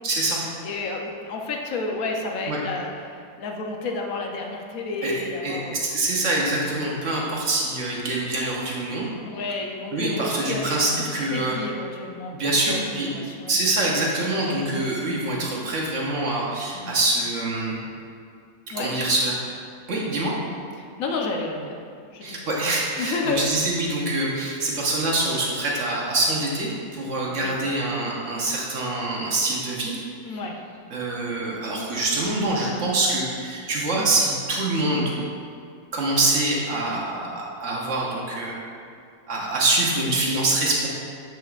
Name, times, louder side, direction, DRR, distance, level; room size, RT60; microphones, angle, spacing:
voice 1, 0.0-0.4 2.5-2.6 5.0-9.1 9.9-11.6 12.3-13.1 13.5-17.8 18.8-19.3 19.9-20.3 22.2-29.9 30.3-30.4 30.9-35.2 35.9-38.6 39.3-40.9, right 2 dB, 55° right, -3 dB, 1.2 m, -25 dB
voice 2, 0.6-5.8 9.2-12.8 13.1-13.5 14.7-14.8 16.7-17.0 18.7-18.9 20.8-21.8 22.1-22.4 23.0-23.5 27.3-27.5 30.2-30.6 34.0-34.1 36.9-37.1, left 3 dB, 65° left, 1 dB, 1.1 m, -31 dB
7.5 x 6.2 x 2.4 m, 2.3 s
omnidirectional pair, 1.7 m